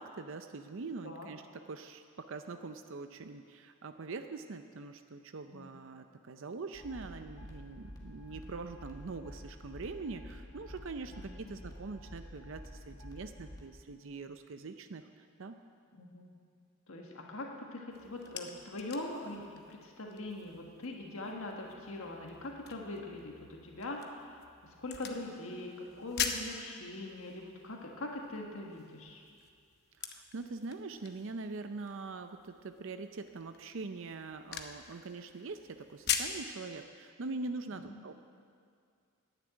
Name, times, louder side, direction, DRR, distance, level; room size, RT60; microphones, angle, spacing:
voice 1, 0.0-15.6 30.0-38.2, right 3 dB, 60° right, 8 dB, 0.5 m, -43 dB
sound 1, 6.7-13.6, left 1 dB, 15° left, 1.6 m, -49 dB
voice 2, 8.0-8.4 11.1-11.6 16.0-16.3 16.9-29.2 37.7-38.0, left 2 dB, 65° left, 0 dB, 1.5 m, -42 dB
sound 2, 17.9-36.5, left 7 dB, 45° left, 0.9 m, -43 dB
11.5 x 10.0 x 8.7 m, 2.2 s
head